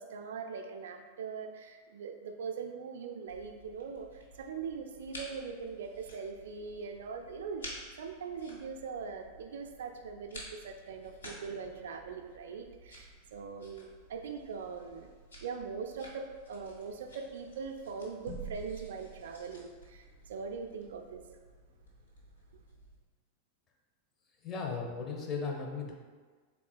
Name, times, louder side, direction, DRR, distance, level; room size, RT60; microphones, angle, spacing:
voice 1, 0.0-7.7 8.0-15.1 15.4-21.2, right 5 dB, 60° right, 5 dB, 0.3 m, -41 dB
sound 1, 3.3-23.0, right 1 dB, 75° left, 0.7 m, -51 dB
voice 2, 24.4-25.9, left 5 dB, 25° left, 0 dB, 0.6 m, -36 dB
3.7 x 3.6 x 2.3 m, 1.5 s
figure-of-eight pair, 90°, 0 cm